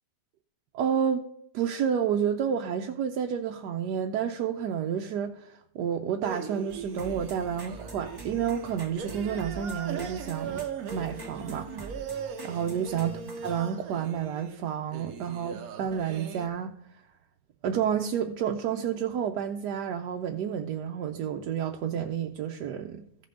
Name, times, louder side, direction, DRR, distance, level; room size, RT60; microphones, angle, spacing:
voice 1, 0.7-1.3 1.5-10.7 10.9-11.7 12.4-16.8 17.6-23.0, right 8 dB, 85° right, 1.2 m, -30 dB
sound 1, 6.2-16.5, right 7 dB, 65° right, 1.2 m, -39 dB
sound 2, 6.7-13.6, right 2 dB, 15° right, 1.0 m, -45 dB
15.0 x 5.5 x 3.8 m
omnidirectional pair, 1.7 m